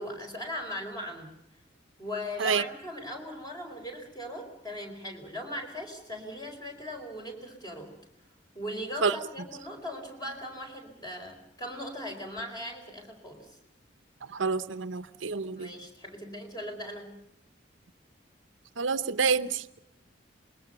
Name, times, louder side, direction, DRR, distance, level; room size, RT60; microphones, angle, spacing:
voice 1, 0.0-1.4 2.0-7.9 8.5-13.5 15.6-17.2, equal, 20° left, 3 dB, 4.5 m, -39 dB
voice 2, 14.3-15.7 18.8-19.8, right 5 dB, 85° right, 12 dB, 0.8 m, -28 dB
26.0 x 21.5 x 6.9 m, 0.77 s
head